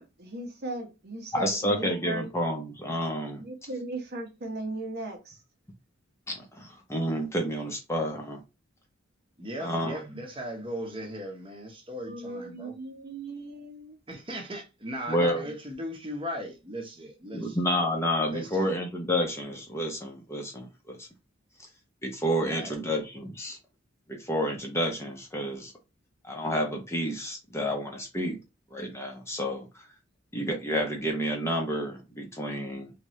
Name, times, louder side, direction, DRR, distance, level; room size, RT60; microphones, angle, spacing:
voice 1, 0.0-2.3 3.4-5.4 12.1-14.0, right 2 dB, 55° right, 0.9 m, -37 dB
voice 2, 1.3-3.4 6.3-8.4 9.6-10.2 15.1-15.4 17.3-21.1 22.0-23.6 24.1-25.7 26.2-28.4 28.7-29.8 30.3-32.9, equal, 15° left, 0.7 m, -30 dB
voice 3, 9.4-12.7 14.1-17.6 18.2-18.7 22.5-22.8, equal, 25° right, 1.0 m, -38 dB
3.3 x 2.9 x 3.1 m
head